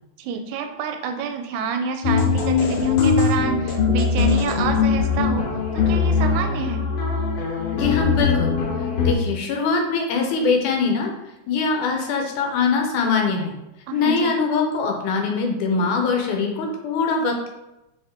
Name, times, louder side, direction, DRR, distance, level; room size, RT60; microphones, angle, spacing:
voice 1, 0.2-5.5 5.7-6.9 13.9-14.4, right 5 dB, 80° right, 6 dB, 1.9 m, -28 dB
sound 1, 2.0-9.1, left 5 dB, 60° left, 1.8 m, -21 dB
voice 2, 7.7-8.5 9.0-11.1 11.5-13.6 13.9-17.5, left 4 dB, 80° left, 2 dB, 2.3 m, -22 dB
5.5 x 4.9 x 3.6 m, 0.94 s
omnidirectional pair, 3.6 m